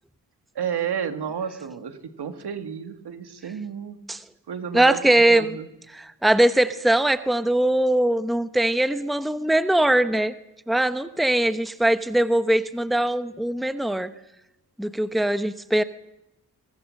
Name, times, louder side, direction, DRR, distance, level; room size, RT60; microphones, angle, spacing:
voice 1, 0.5-4.0 4.5-5.7, right 8 dB, 85° right, 8 dB, 2.1 m, -31 dB
voice 2, 4.7-5.5 5.9-10.3 10.7-14.1 14.8-15.8, right 1 dB, ahead, 11 dB, 1.0 m, -21 dB
24.0 x 23.5 x 6.6 m, 0.88 s
cardioid pair, 70°, 38 cm